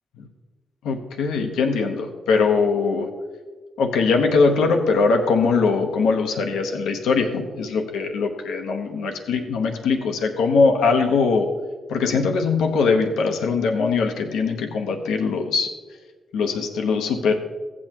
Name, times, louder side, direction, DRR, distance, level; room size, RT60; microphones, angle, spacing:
voice 1, 0.8-3.1 3.8-11.5 11.9-15.7 16.3-17.3, left 4 dB, 90° left, 3 dB, 0.9 m, -21 dB
15.0 x 8.6 x 3.0 m, 1.4 s
supercardioid pair, 60°, 0 cm